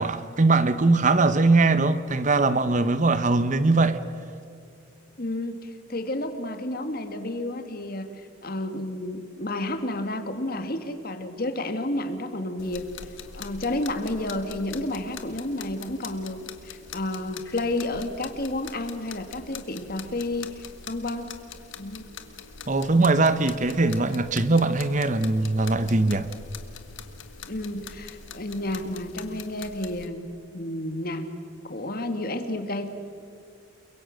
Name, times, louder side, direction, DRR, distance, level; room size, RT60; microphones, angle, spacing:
voice 1, 0.0-4.0 22.7-26.3, right 3 dB, 40° right, 0.9 m, -21 dB
voice 2, 5.2-8.1 8.4-12.9 13.4-21.3 21.8-22.1 27.5-30.3 30.5-31.2 31.6-32.9, left 1 dB, 50° left, 2.0 m, -31 dB
sound 1, 12.6-30.1, left 6 dB, 75° left, 1.7 m, -43 dB
29.5 x 23.0 x 6.5 m
head